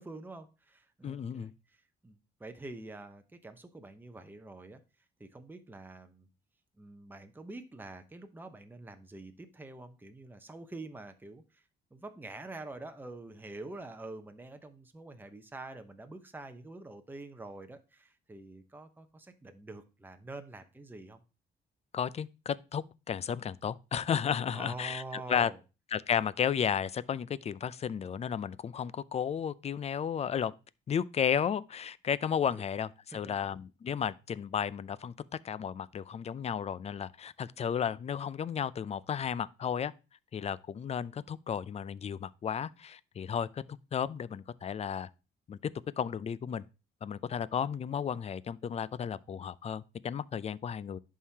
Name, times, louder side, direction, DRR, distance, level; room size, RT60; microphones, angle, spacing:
voice 1, 0.0-4.8 5.2-6.3 6.8-11.6 11.9-21.2 24.5-25.6 32.5-32.6 33.1-33.3, right 2 dB, 10° right, 0.8 m, -46 dB
voice 2, 1.0-1.5 21.9-25.5 25.9-30.5 30.9-35.1 35.4-39.9 40.3-43.6 43.9-45.1 45.5-45.6 46.0-46.6 47.0-51.0, left 8 dB, 35° left, 0.4 m, -33 dB
11.0 x 3.7 x 2.8 m
cardioid pair, 90°, 20 cm